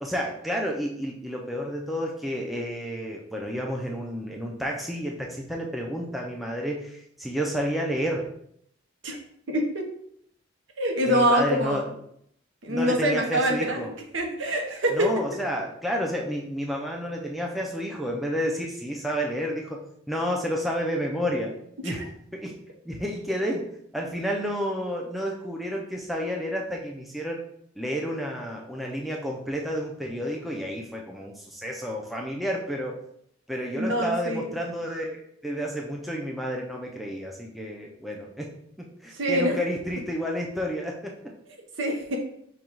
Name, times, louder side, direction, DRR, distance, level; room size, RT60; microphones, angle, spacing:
voice 1, 0.0-8.3 11.1-11.8 12.7-13.9 14.9-21.5 21.8-22.0 22.3-22.6 22.8-23.7 23.9-27.4 27.8-33.0 33.5-41.2, equal, ahead, -1 dB, 0.4 m, -30 dB
voice 2, 9.5-9.9 10.8-11.8 12.6-13.9 14.1-15.1 21.8-22.0 33.7-34.5 39.1-39.6 41.8-42.2, equal, 75° right, 2 dB, 0.9 m, -25 dB
5.1 x 2.3 x 4.5 m, 0.70 s
head